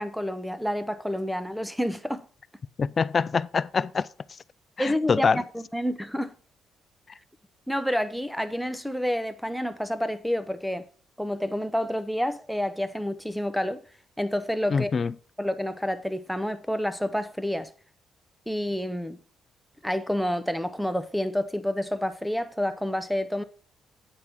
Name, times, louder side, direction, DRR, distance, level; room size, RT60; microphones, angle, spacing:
voice 1, 0.0-2.3 4.8-6.3 7.7-10.9 11.2-13.8 14.2-14.9 15.4-17.7 18.5-19.2 19.8-23.4, equal, ahead, 0.8 m, -29 dB
voice 2, 2.8-4.1 4.8-5.4 14.7-15.1, left 5 dB, 40° left, 0.4 m, -25 dB
8.9 x 4.8 x 5.8 m
cardioid pair, 90°, 0 cm